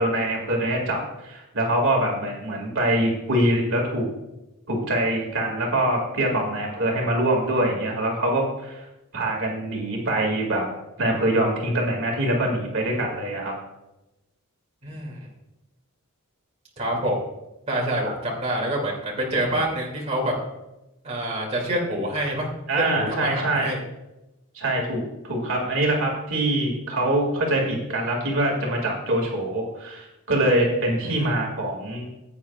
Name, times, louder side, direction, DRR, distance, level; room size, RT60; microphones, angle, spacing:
voice 1, 0.0-4.1 4.7-8.8 9.1-10.7 11.0-13.5 22.7-23.7 24.5-32.1, right 1 dB, 60° right, 0 dB, 2.2 m, -24 dB
voice 2, 14.8-15.2 16.8-17.2 17.7-20.3 21.0-22.5 23.0-23.8 31.1-31.3, right 1 dB, 30° right, -3 dB, 2.4 m, -26 dB
16.5 x 8.5 x 2.4 m, 0.96 s
head